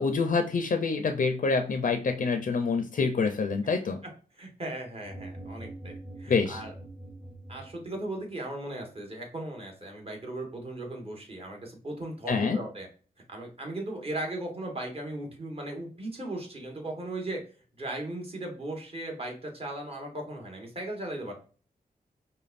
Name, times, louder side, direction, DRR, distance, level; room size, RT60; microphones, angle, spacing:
voice 1, 0.0-4.0 6.3-6.6 12.3-12.6, left 4 dB, 55° left, 6 dB, 0.5 m, -26 dB
voice 2, 4.4-6.7 7.5-12.9 13.3-17.4 17.8-21.4, right 1 dB, 35° right, 1 dB, 1.4 m, -37 dB
sound 1, 5.0-8.3, right 1 dB, 10° right, 0.9 m, -44 dB
5.2 x 2.2 x 2.5 m, 0.39 s
cardioid pair, 65°, 16 cm